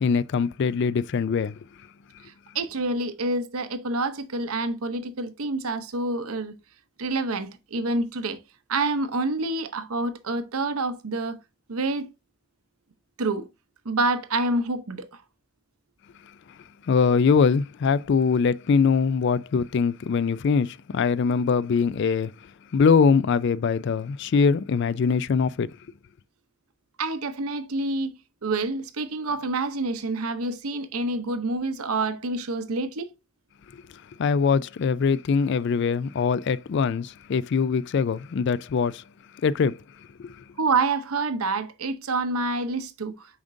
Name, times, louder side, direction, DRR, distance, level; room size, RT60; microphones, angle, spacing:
voice 1, 0.0-1.5 16.9-22.3 22.7-25.7 34.2-39.0 39.4-39.8 40.2-40.4, left 5 dB, 50° left, 0.3 m, -22 dB
voice 2, 2.5-6.5 7.0-8.4 8.7-11.4 11.7-12.1 13.2-13.5 13.8-15.2 27.0-28.1 28.4-33.1 40.6-43.3, right 2 dB, 75° right, 0.8 m, -27 dB
7.1 x 5.1 x 2.6 m
head